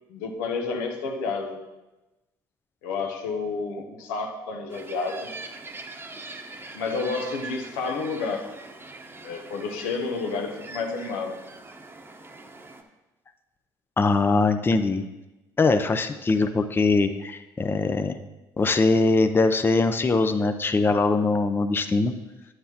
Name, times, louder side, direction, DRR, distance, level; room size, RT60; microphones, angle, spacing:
voice 1, 0.1-1.6 2.8-5.3 6.7-8.5 9.2-11.4, left 4 dB, 90° left, 3 dB, 0.8 m, -30 dB
sound 1, 4.7-12.8, right 3 dB, 25° right, 0.9 m, -42 dB
voice 2, 14.0-15.1 15.6-18.2 18.6-22.1, left 3 dB, 20° left, 8 dB, 0.5 m, -22 dB
9.1 x 7.8 x 2.9 m, 1.0 s
supercardioid pair, 70°, 10 cm